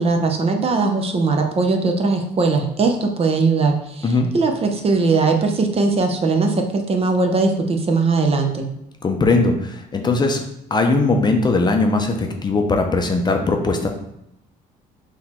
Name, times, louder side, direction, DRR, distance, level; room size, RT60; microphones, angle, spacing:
voice 1, 0.0-8.7, right 3 dB, 35° right, 4 dB, 0.6 m, -19 dB
voice 2, 9.0-10.4 10.7-13.9, left 3 dB, 25° left, 3 dB, 0.6 m, -19 dB
3.9 x 3.0 x 4.3 m, 0.79 s
cardioid pair, 110°, 17 cm